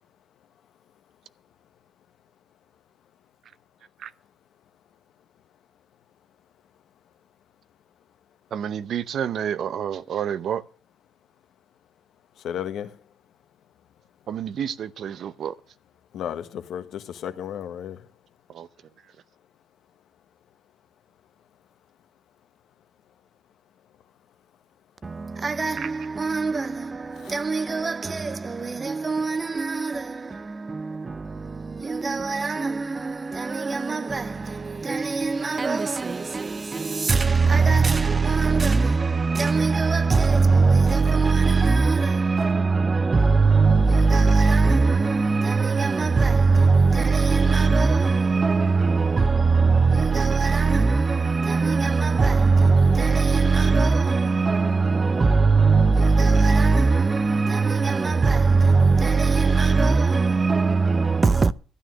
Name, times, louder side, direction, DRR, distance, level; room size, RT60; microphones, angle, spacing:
voice 1, 8.5-10.6 14.3-15.6 18.5-18.7 25.8-25.9, right 9 dB, 65° right, 0.7 m, -29 dB
voice 2, 12.4-13.0 16.1-18.1 27.2-27.4, left 9 dB, 75° left, 1.2 m, -34 dB
voice 3, 25.0-61.5, right 4 dB, 30° right, 0.6 m, -21 dB
13.0 x 9.5 x 6.3 m
cardioid pair, 90°, 0 cm